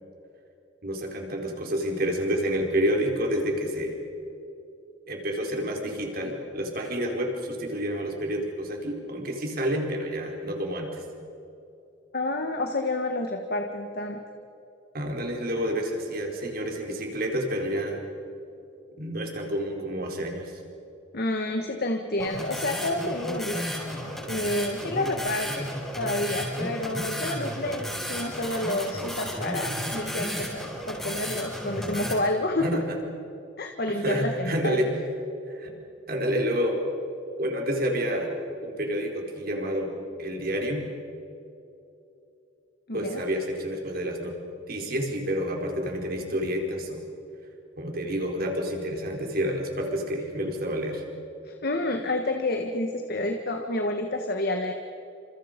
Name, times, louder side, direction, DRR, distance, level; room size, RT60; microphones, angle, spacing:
voice 1, 0.8-4.0 5.1-11.0 14.9-18.0 19.0-20.6 24.8-24.9 32.6-33.0 33.9-34.9 35.5-35.7 36.1-36.8 37.4-38.3 38.6-39.9 40.2-40.8 42.9-44.3 44.7-47.0 47.8-51.0, equal, 50° right, 1 dB, 4.5 m, -29 dB
voice 2, 12.1-14.2 21.1-23.6 24.3-25.7 26.0-32.7 33.6-34.8 42.9-43.2 51.4-54.7, left 1 dB, 55° left, 4 dB, 1.6 m, -29 dB
sound 1, 22.2-32.1, equal, ahead, 6.3 m, -33 dB
29.5 x 27.0 x 5.3 m, 2.8 s
head